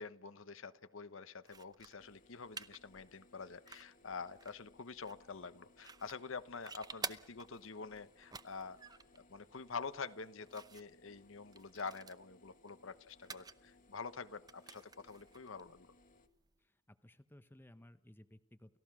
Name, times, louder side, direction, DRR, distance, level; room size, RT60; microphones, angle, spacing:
voice 1, 0.0-8.8 9.3-15.9, left 5 dB, 65° left, 12 dB, 1.0 m, -47 dB
sound 1, 1.4-16.6, right 5 dB, 20° right, 0.7 m, -53 dB
sound 2, 2.0-16.3, left 2 dB, 40° left, 1.7 m, -67 dB
voice 2, 16.6-18.8, left 1 dB, 10° left, 10 dB, 0.8 m, -59 dB
30.0 x 15.0 x 6.2 m, 0.81 s
head